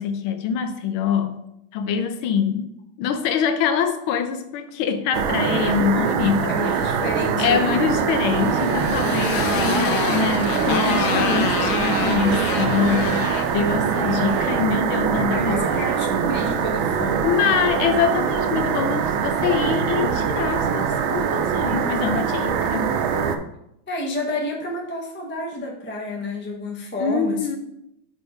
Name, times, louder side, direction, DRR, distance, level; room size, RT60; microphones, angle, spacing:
voice 1, 0.0-1.4 1.7-2.7 3.0-6.5 7.4-13.3 13.5-15.6 17.2-22.9 27.0-27.6, left 7 dB, 90° left, 8 dB, 1.5 m, -24 dB
sound 1, 5.1-23.4, right 7 dB, 85° right, 1.4 m, -23 dB
voice 2, 5.8-7.7 12.9-13.2 15.3-17.4 23.9-27.5, left 1 dB, 15° left, -1 dB, 0.4 m, -30 dB
Motorcycle, 8.1-14.6, left 7 dB, 70° left, 1.0 m, -28 dB
5.5 x 4.2 x 4.7 m, 0.80 s
omnidirectional pair, 2.2 m